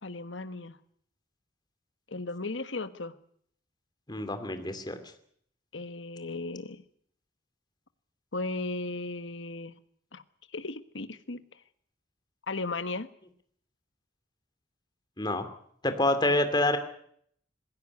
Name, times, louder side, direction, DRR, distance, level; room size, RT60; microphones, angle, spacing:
voice 1, 0.0-0.8 2.1-3.2 5.7-6.8 8.3-9.7 10.1-10.2 10.5-11.6 12.5-13.1, left 3 dB, 85° left, 11 dB, 1.4 m, -36 dB
voice 2, 4.1-5.0 15.2-15.5 15.8-16.8, left 1 dB, 25° left, 9 dB, 2.5 m, -27 dB
21.0 x 16.5 x 9.7 m, 0.66 s
head